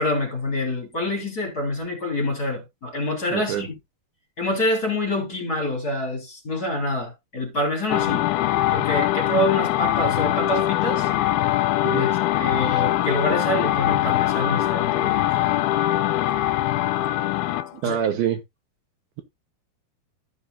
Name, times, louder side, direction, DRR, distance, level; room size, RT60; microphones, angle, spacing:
voice 1, 0.0-3.7 4.4-8.3 8.7-11.1 11.9-12.1 12.4-15.2 17.8-18.0, left 1 dB, 25° left, 3.4 m, -26 dB
voice 2, 3.3-3.7 11.8-12.1 12.6-12.8 17.8-18.4, right 9 dB, 70° right, 2.9 m, -26 dB
sound 1, 7.9-17.7, left 14 dB, 80° left, 2.4 m, -22 dB
15.0 x 5.5 x 2.7 m
omnidirectional pair, 4.6 m